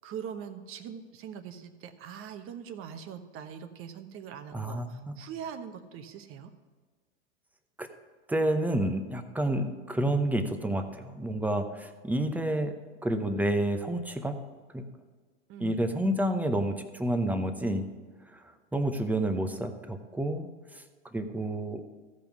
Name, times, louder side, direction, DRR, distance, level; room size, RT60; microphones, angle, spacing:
voice 1, 0.0-6.5 15.5-15.8, right 8 dB, 35° right, 9 dB, 1.1 m, -42 dB
voice 2, 4.5-5.2 7.8-7.9 8.3-12.7 13.0-14.3 14.7-14.8 15.6-17.8 18.3-18.4 18.7-20.8 21.1-21.8, right 1 dB, 5° right, 7 dB, 0.8 m, -29 dB
14.5 x 5.4 x 6.0 m, 1.4 s
hypercardioid pair, 115°, 35 cm